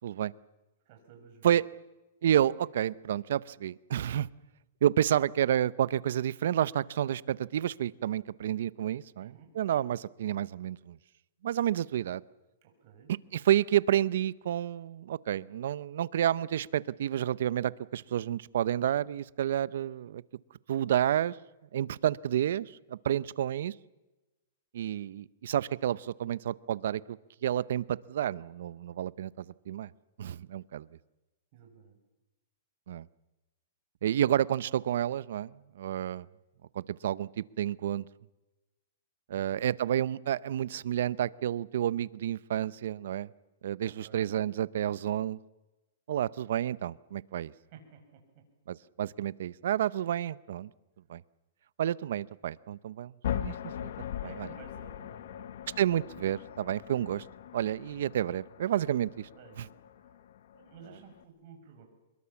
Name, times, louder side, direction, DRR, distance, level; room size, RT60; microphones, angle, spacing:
voice 1, 0.8-1.6 9.2-9.5 12.6-13.1 31.5-32.0 43.8-44.2 47.5-48.4 54.2-55.5 59.3-59.7 60.0-60.3 60.5-61.8, right 6 dB, 40° right, 4 dB, 6.4 m, -54 dB
voice 2, 2.2-4.3 4.8-11.0 11.4-12.2 13.3-20.2 20.7-21.4 21.7-23.7 24.7-29.9 30.2-30.9 32.9-33.1 34.0-36.3 36.7-38.1 39.3-43.3 43.6-45.4 46.1-47.5 48.7-50.7 51.1-51.2 51.8-53.6 53.8-54.5 55.8-57.2 57.5-59.3, right 11 dB, 65° right, 19 dB, 0.7 m, -30 dB
sound 1, 53.2-61.2, left 10 dB, 60° left, 1.1 m, -40 dB
24.5 x 21.5 x 7.2 m, 1.1 s
hypercardioid pair, 160°, 0 cm